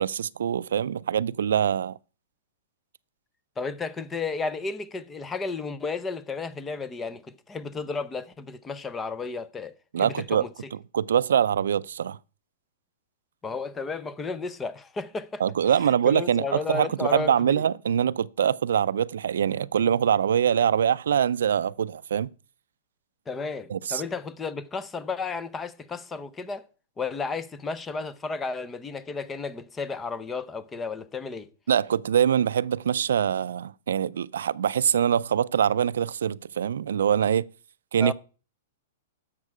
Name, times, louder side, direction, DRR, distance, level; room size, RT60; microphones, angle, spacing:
voice 1, 0.0-2.0 9.9-10.5 10.9-12.2 15.4-22.3 23.7-24.0 31.7-37.5 37.9-38.1, right 8 dB, 85° right, 0.4 m, -24 dB
voice 2, 3.6-10.7 13.4-15.4 15.8-17.6 23.3-26.7 27.0-31.5 38.0-38.1, left 4 dB, 10° left, 0.6 m, -33 dB
11.0 x 7.5 x 4.8 m
hypercardioid pair, 160°, 0 cm